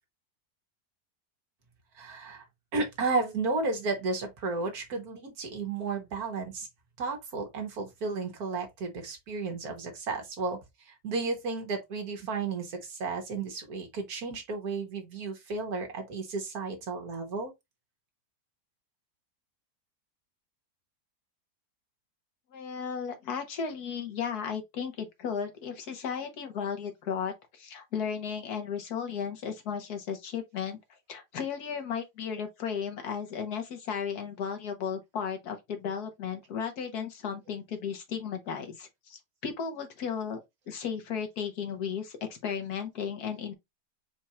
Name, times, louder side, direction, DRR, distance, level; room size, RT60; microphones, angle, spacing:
voice 1, 1.9-2.4 2.7-6.7 7.0-17.5, right 3 dB, 70° right, 1.6 m, -33 dB
voice 2, 22.5-30.8 31.1-40.4 40.7-43.5, left 7 dB, 70° left, 1.6 m, -35 dB
4.5 x 2.4 x 4.2 m
omnidirectional pair, 1.7 m